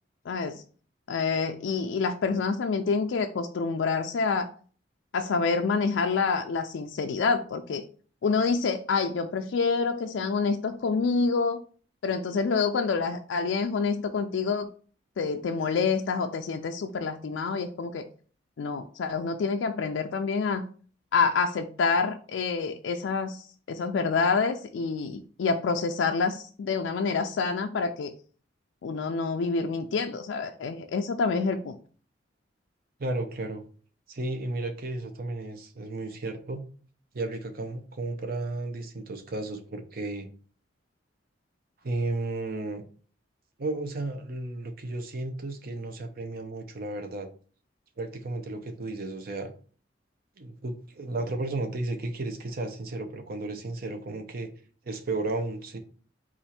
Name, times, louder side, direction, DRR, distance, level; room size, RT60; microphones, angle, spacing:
voice 1, 0.3-0.6 1.1-4.5 5.1-7.8 8.2-11.6 12.0-14.7 15.2-18.1 18.6-20.7 21.1-28.1 28.8-31.8, left 4 dB, 80° left, 5 dB, 0.4 m, -27 dB
voice 2, 33.0-33.6 34.1-36.6 37.1-40.3 41.8-42.8 43.6-47.3 48.0-49.5 50.4-54.5 54.8-55.8, right 2 dB, 55° right, 7 dB, 0.7 m, -33 dB
4.4 x 2.5 x 4.2 m, 0.42 s
head